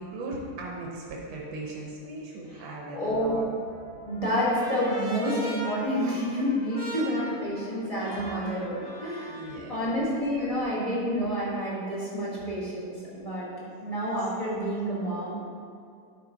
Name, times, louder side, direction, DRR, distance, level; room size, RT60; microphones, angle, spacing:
voice 1, 0.0-3.5 9.3-9.9 13.6-13.7 14.4-14.5, right 2 dB, 85° right, -2 dB, 1.7 m, -38 dB
voice 2, 2.9-3.4 4.1-9.4 9.7-13.5 13.8-15.5, equal, 20° left, -8 dB, 2.0 m, -29 dB
Trumpet, 3.3-9.6, equal, 50° left, 2.6 m, -42 dB
10.0 x 4.8 x 3.9 m, 2.4 s
omnidirectional pair, 2.2 m